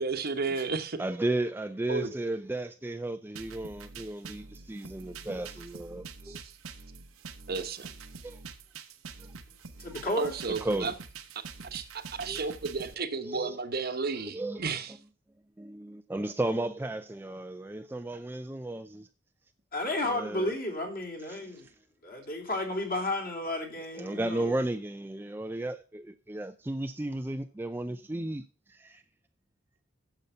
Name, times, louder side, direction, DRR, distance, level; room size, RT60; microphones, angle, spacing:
voice 1, 0.0-1.0 1.9-2.1 6.2-6.4 7.5-7.9 10.2-10.9 11.7-14.9, right 4 dB, 45° right, 1.0 m, -32 dB
voice 2, 1.0-6.4 8.2-8.4 9.8-9.9 10.6-10.9 12.3-12.4 13.2-13.6 14.3-14.7 15.6-19.1 20.0-20.5 21.3-21.7 23.9-29.0, right 2 dB, 10° right, 0.4 m, -34 dB
sound 1, 3.3-12.9, right 5 dB, 90° right, 1.1 m, -46 dB
voice 3, 9.8-10.3 19.7-21.7 22.0-24.5, left 1 dB, 45° left, 2.9 m, -32 dB
9.3 x 7.1 x 5.5 m
head